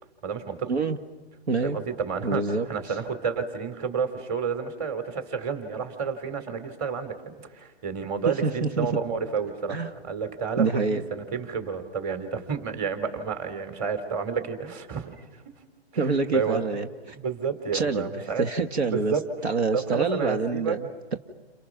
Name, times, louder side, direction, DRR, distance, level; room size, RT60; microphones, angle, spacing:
voice 1, 0.2-0.7 1.6-2.4 2.7-7.2 7.5-9.8 10.0-15.2 16.3-16.6 17.0-18.4 18.8-19.2 19.7-20.8, right 6 dB, 25° right, 9 dB, 3.1 m, -30 dB
voice 2, 1.5-1.8 2.2-2.7 8.4-8.9 9.7-9.9 10.6-11.0 16.0-16.9 17.7-19.1 19.4-21.2, right 4 dB, 80° right, 7 dB, 2.0 m, -26 dB
30.0 x 28.5 x 6.1 m, 1.2 s
hypercardioid pair, 145°, 32 cm